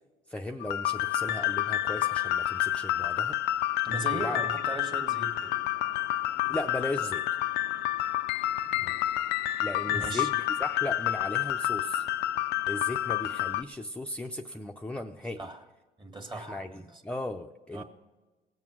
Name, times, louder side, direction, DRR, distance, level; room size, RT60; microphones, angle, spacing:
voice 1, 0.3-3.4 4.2-4.4 6.4-7.2 9.6-12.0 12.7-15.5 16.3-17.8, left 1 dB, 5° left, 0.5 m, -36 dB
sound 1, 0.6-13.6, left 13 dB, 85° left, 0.4 m, -29 dB
voice 2, 3.8-5.6 8.7-9.0 9.9-10.3 15.4-15.6 16.0-17.0 17.7-17.8, right 2 dB, 25° right, 1.6 m, -38 dB
18.0 x 7.3 x 6.2 m
cardioid pair, 110°, 17 cm